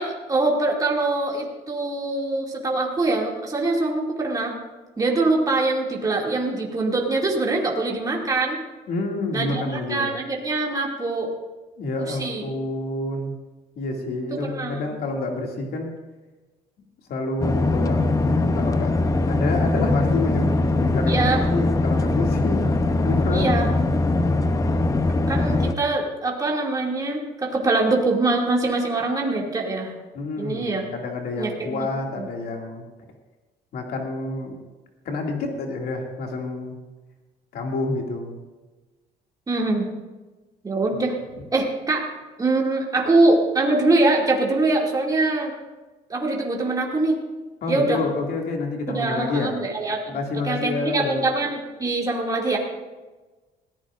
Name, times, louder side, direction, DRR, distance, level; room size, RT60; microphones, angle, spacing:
voice 1, 0.0-4.5 5.0-8.6 9.3-11.3 12.1-12.4 14.4-14.9 21.1-21.4 23.3-23.7 25.3-29.9 30.4-30.9 31.4-31.5 32.2-32.3 39.5-39.9 40.6-41.1 41.5-42.1 42.4-45.5 46.1-47.2 47.7-48.0 48.9-50.0 50.4-52.6, right 2 dB, 20° right, -2 dB, 2.4 m, -23 dB
voice 2, 8.9-10.1 11.8-13.4 13.8-15.9 17.1-19.0 19.3-22.7 23.0-23.6 30.1-32.8 33.7-34.6 35.1-36.9 37.5-38.4 40.9-41.0 47.6-49.6 50.1-51.2, left 2 dB, 65° left, 1 dB, 2.3 m, -28 dB
sound 1, 17.4-25.7, left 2 dB, 20° left, 0.7 m, -21 dB
20.0 x 15.0 x 2.5 m, 1.2 s
cardioid pair, 110°, 17 cm